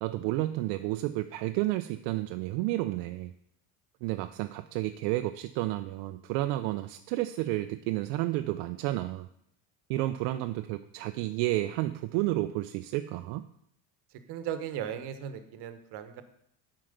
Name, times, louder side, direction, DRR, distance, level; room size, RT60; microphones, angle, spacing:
voice 1, 0.0-3.3 4.0-9.3 9.9-13.4, right 16 dB, 85° right, 8 dB, 0.5 m, -31 dB
voice 2, 14.3-16.2, right 9 dB, 65° right, 10 dB, 1.1 m, -37 dB
7.7 x 4.7 x 6.5 m, 0.72 s
cardioid pair, 110°, 43 cm